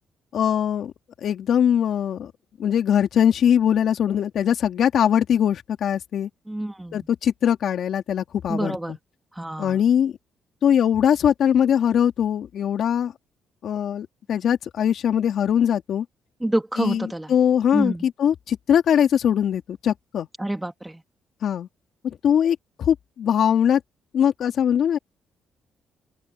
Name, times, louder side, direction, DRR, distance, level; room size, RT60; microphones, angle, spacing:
voice 1, 0.3-0.9 1.2-2.3 2.6-6.3 6.9-9.0 9.6-10.2 10.6-13.1 13.6-16.0 16.8-20.3 21.4-21.7 22.0-23.8 24.1-25.0, left 9 dB, 65° left, 3.0 m, -21 dB
voice 2, 6.5-7.1 8.5-9.0 9.3-9.8 16.4-17.3 17.7-18.1 20.4-21.0, right 1 dB, 10° right, 2.2 m, -27 dB
open air
cardioid pair, 90°, 0 cm